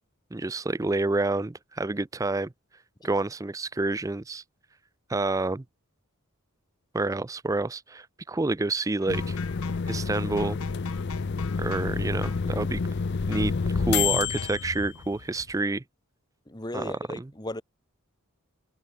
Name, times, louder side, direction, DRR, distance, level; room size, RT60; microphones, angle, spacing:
voice 1, 0.3-2.5 3.0-4.4 5.1-5.6 6.9-9.4 9.9-10.6 11.6-12.8 13.3-15.8 16.7-17.3, right 2 dB, 15° right, 0.4 m, -28 dB
sound 1, 9.0-11.9 12.2-12.5 13.3-13.6 14.4-14.7, left 6 dB, 85° left, 5.1 m, -44 dB
sound 2, 9.1-15.5, left 5 dB, 50° left, 0.5 m, -29 dB
voice 2, 16.5-17.6, left 1 dB, 20° left, 1.7 m, -36 dB
head